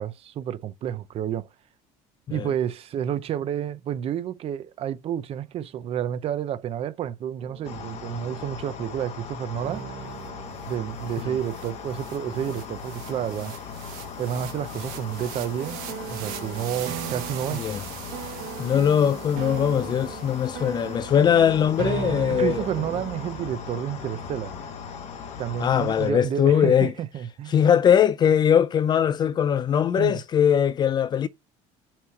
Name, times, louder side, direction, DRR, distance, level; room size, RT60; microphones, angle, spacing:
voice 1, 0.0-1.5 2.3-9.8 10.7-13.6 14.2-15.8 16.1-17.7 22.3-24.5 25.4-27.7 30.0-30.2, right 10 dB, 40° right, 0.5 m, -30 dB
sound 1, 7.4-8.4 9.6-12.9 15.6-23.5, right 9 dB, 65° right, 1.0 m, -37 dB
sound 2, 7.6-26.1, left 6 dB, 45° left, 1.0 m, -38 dB
sound 3, 10.2-10.3 10.6-20.9, right 12 dB, 85° right, 1.3 m, -43 dB
voice 2, 18.6-22.6 25.6-26.9 27.5-31.3, left 8 dB, 30° left, 0.3 m, -21 dB
5.8 x 3.2 x 5.6 m
cardioid pair, 140°, 15 cm